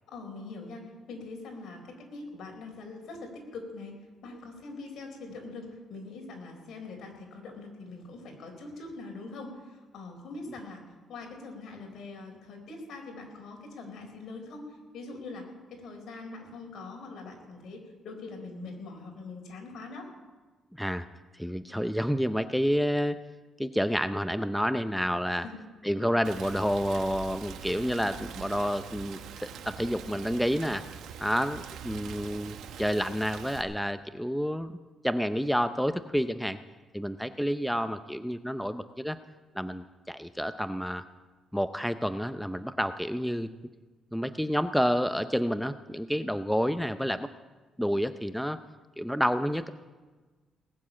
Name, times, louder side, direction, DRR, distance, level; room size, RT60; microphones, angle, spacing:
voice 1, 0.1-0.8 1.1-4.0 4.2-10.8 11.1-20.1 25.3-25.5, left 3 dB, 70° left, 2 dB, 4.4 m, -43 dB
voice 2, 20.7-21.1 21.3-23.2 23.6-25.4 25.8-29.2 29.7-30.8 31.2-34.7 35.0-36.6 36.9-39.2 39.5-41.0 41.5-43.5 44.1-47.3 47.8-48.6 49.0-49.7, equal, ahead, 10 dB, 0.6 m, -29 dB
Rain, 26.2-33.6, right 8 dB, 80° right, 1.2 m, -43 dB
19.5 x 7.3 x 8.8 m, 1.3 s
cardioid pair, 90°, 0 cm